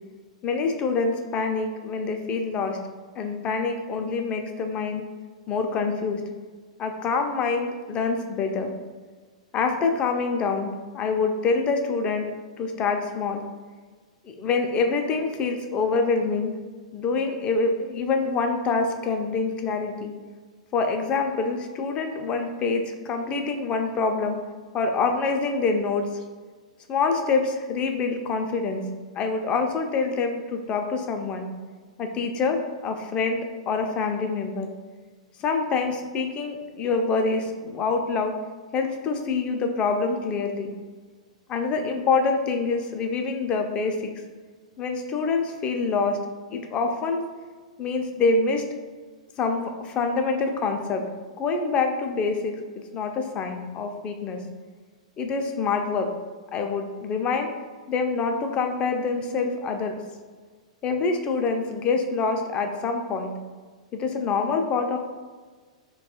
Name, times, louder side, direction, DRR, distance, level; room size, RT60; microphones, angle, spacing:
voice 1, 0.4-2.8 3.2-5.1 5.5-6.2 6.8-8.7 9.5-12.3 12.6-13.5 14.2-16.5 16.9-20.1 20.7-24.4 24.7-26.1 26.9-28.9 29.2-31.5 32.0-34.7 35.4-38.3 38.7-40.7 41.5-44.1 44.8-46.2 46.5-47.2 47.8-48.6 49.4-51.1 51.4-52.6 52.9-54.4 55.2-56.1 56.5-57.5 57.9-60.0 60.8-63.4 63.9-65.0, left 4 dB, 30° left, 4 dB, 0.4 m, -26 dB
2.9 x 2.2 x 2.8 m, 1.4 s
hypercardioid pair, 110°, 4 cm